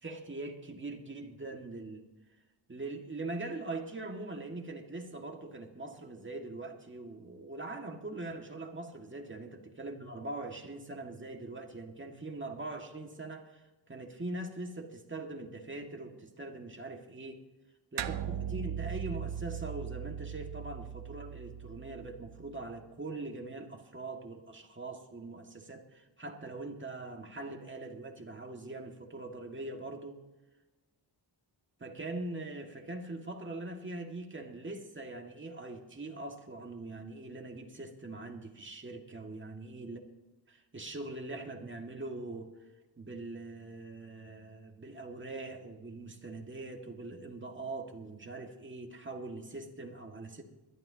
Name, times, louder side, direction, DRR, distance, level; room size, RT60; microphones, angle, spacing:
voice 1, 0.0-2.0 2.7-17.4 17.9-30.2 31.8-40.0 40.5-42.5 43.0-50.4, right 2 dB, 25° right, 2 dB, 1.9 m, -42 dB
sound 1, 18.0-22.7, right 9 dB, 70° right, 0.7 m, -39 dB
22.0 x 12.5 x 2.9 m, 1.1 s
wide cardioid pair, 100°, 43 cm